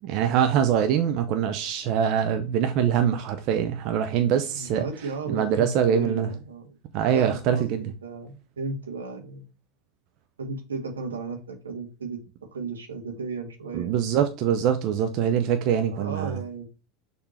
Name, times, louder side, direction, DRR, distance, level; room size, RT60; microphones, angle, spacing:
voice 1, 0.0-4.8 5.3-6.3 6.9-7.9 13.7-16.4, right 8 dB, 50° right, 0.7 m, -24 dB
voice 2, 4.5-6.8 7.1-9.4 10.4-12.2 12.5-13.9 15.8-16.7, right 4 dB, 85° right, 1.7 m, -34 dB
6.7 x 3.5 x 4.2 m
hypercardioid pair, 85°, 0 cm